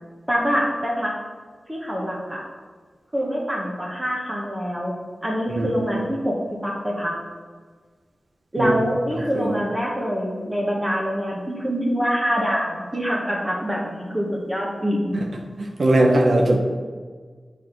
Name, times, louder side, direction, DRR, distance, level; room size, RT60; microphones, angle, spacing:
voice 1, 0.3-1.1 1.7-2.4 3.1-4.9 5.2-6.4 6.6-7.2 8.5-15.1, equal, 15° right, -3 dB, 1.1 m, -25 dB
voice 2, 9.1-9.6 15.1-15.3 15.6-16.6, right 1 dB, 60° right, 1 dB, 0.8 m, -20 dB
7.3 x 4.1 x 4.5 m, 1.5 s
wide cardioid pair, 70°, 0 cm